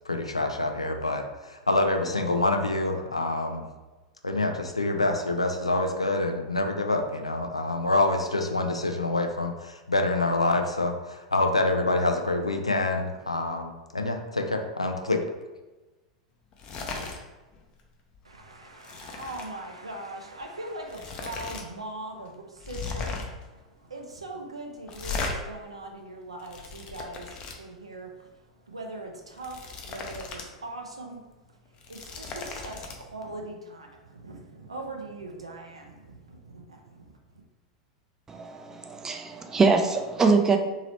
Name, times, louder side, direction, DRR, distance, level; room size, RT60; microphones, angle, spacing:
voice 1, 0.1-1.2 1.5-3.6 4.2-15.2, left 2 dB, 85° left, 5 dB, 0.3 m, -26 dB
sound 1, 16.5-17.2 17.5-17.8 18.1-19.5 20.4-20.5 20.9-21.6 21.9-22.0 22.6-23.4 24.9-25.3 26.1-27.6 29.2-30.5 30.8-30.9 31.6-32.9, left 4 dB, 35° left, 0.5 m, -36 dB
voice 2, 18.2-23.2 23.6-28.1 28.7-31.2 31.9-37.1, right 2 dB, 80° right, 2 dB, 0.5 m, -41 dB
voice 3, 38.3-40.6, right 4 dB, 15° right, 5 dB, 0.4 m, -23 dB
2.9 x 2.8 x 3.0 m, 1.2 s
figure-of-eight pair, 90°, 3 cm